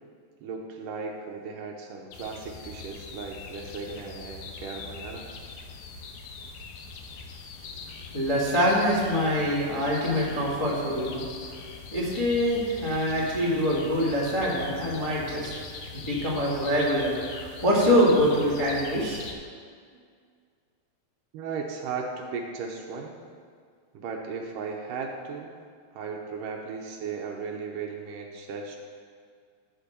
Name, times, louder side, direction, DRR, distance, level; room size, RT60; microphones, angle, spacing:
voice 1, 0.4-5.3 19.9-20.1 21.3-23.2 23.9-25.5 25.9-28.8, right 5 dB, 75° right, 1 dB, 2.3 m, -36 dB
sound 1, 2.1-19.3, left 4 dB, 80° left, 2.6 m, -42 dB
voice 2, 8.1-11.2 11.9-15.5 15.9-19.2, equal, 15° left, -5 dB, 1.0 m, -24 dB
13.5 x 4.5 x 6.7 m, 2.1 s
omnidirectional pair, 4.1 m